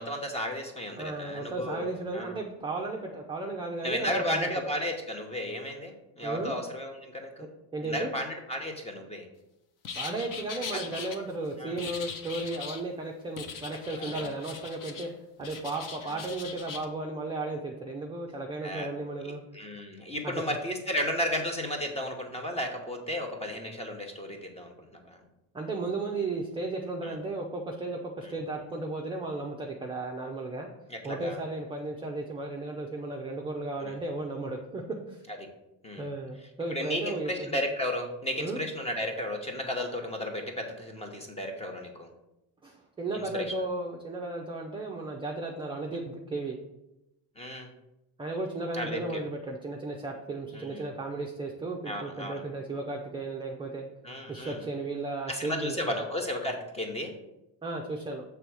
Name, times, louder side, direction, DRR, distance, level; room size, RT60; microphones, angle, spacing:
voice 1, 0.0-2.3 3.8-7.5 7.8-9.3 11.6-11.7 14.0-14.3 16.1-16.2 18.6-18.9 19.2-25.2 27.0-27.2 30.9-31.4 33.8-33.9 35.8-36.1 36.7-42.1 43.1-43.5 47.4-47.7 48.7-49.2 50.5-50.9 51.9-52.4 54.0-54.6 55.3-57.1, left 1 dB, 15° left, 3 dB, 0.9 m, -34 dB
voice 2, 1.0-4.5 6.2-6.5 7.7-8.1 10.0-15.1 15.4-19.4 20.2-20.4 25.5-30.7 31.0-34.8 35.1-35.2 36.0-37.6 38.4-38.6 42.6-46.6 48.2-53.8 54.3-56.0 57.6-58.2, right 2 dB, 10° right, 0 dB, 0.4 m, -35 dB
sound 1, 9.8-11.2 11.8-12.8 13.4-15.1 15.4-16.9, left 5 dB, 50° left, 0.8 m, -40 dB
6.8 x 3.4 x 6.1 m, 0.90 s
cardioid pair, 160°, 43 cm